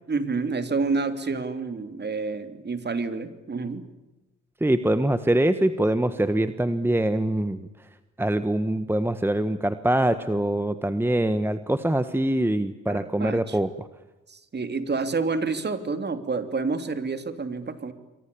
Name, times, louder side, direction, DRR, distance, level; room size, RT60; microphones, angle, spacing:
voice 1, 0.1-3.9 12.9-13.6 14.3-17.9, right 4 dB, 35° right, 9 dB, 3.1 m, -29 dB
voice 2, 4.6-7.7 8.2-13.9, right 1 dB, 5° right, 11 dB, 1.3 m, -24 dB
28.5 x 23.5 x 7.0 m, 1.0 s
cardioid pair, 90°, 30 cm